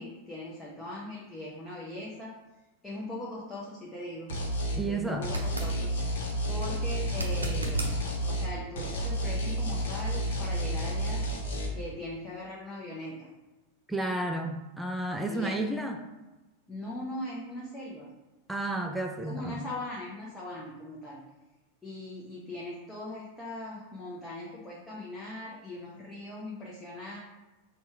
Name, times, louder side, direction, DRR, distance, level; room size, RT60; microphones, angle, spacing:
voice 1, 0.0-2.4 2.8-4.3 4.9-5.9 6.5-7.9 8.2-11.3 11.7-13.3 15.3-15.7 16.7-18.1 19.2-21.2 21.8-27.2, left 1 dB, 10° left, -6 dB, 0.8 m, -40 dB
sound 1, 4.3-4.8 5.2-8.5 8.8-11.7, right 1 dB, 60° left, 0.8 m, -31 dB
voice 2, 4.8-5.3 13.9-16.0 18.5-19.6, right 2 dB, 5° right, 3 dB, 0.4 m, -32 dB
sound 2, 5.2-5.7 7.1-7.9 10.9-11.0, right 1 dB, 80° right, 0.6 m, -34 dB
4.1 x 2.3 x 4.5 m, 1.1 s
figure-of-eight pair, 90°, 0 cm